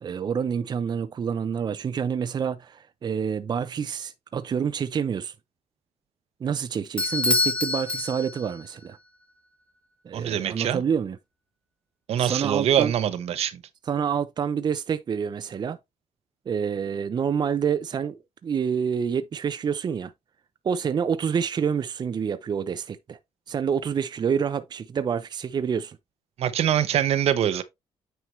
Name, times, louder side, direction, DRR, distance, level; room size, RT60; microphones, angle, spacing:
voice 1, 0.0-5.3 6.4-9.0 10.0-11.2 12.2-12.9 13.9-15.8 16.5-20.1 20.6-23.2 23.5-26.0, right 7 dB, 45° right, 0.6 m, -27 dB
Bell / Doorbell, 7.0-8.7, left 2 dB, 10° left, 0.8 m, -26 dB
voice 2, 10.1-10.8 12.1-13.6 26.4-27.6, right 10 dB, 75° right, 0.9 m, -24 dB
9.3 x 4.6 x 3.2 m
cardioid pair, 120°, 11 cm